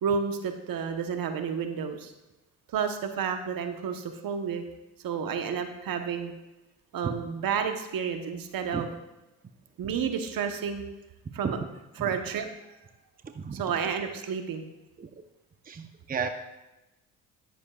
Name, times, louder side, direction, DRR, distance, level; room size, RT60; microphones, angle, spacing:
voice 1, 0.0-2.1 2.7-4.6 5.0-6.3 6.9-8.9 9.8-10.8 11.3-11.6 12.0-12.5 13.5-14.7, right 6 dB, 60° right, 7 dB, 1.0 m, -31 dB
voice 2, 15.7-16.3, right 5 dB, 20° right, 7 dB, 0.7 m, -33 dB
10.0 x 9.3 x 2.4 m, 1.0 s
supercardioid pair, 60°, 39 cm